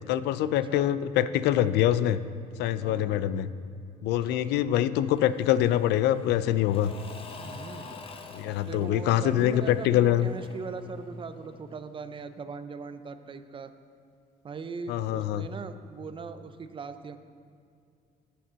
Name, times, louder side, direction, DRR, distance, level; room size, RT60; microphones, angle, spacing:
voice 1, 0.1-2.2 2.6-3.5 4.0-6.9 8.3-10.3 14.9-15.5, left 12 dB, 80° left, 14 dB, 0.4 m, -24 dB
voice 2, 2.8-3.3 4.0-4.5 7.3-8.0 8.7-13.7 14.4-17.2, right 5 dB, 30° right, 10 dB, 0.5 m, -40 dB
Engine / Mechanisms / Drill, 5.2-11.8, left 4 dB, 35° left, 0.8 m, -47 dB
8.0 x 6.2 x 6.2 m, 2.4 s
cardioid pair, 110°, 17 cm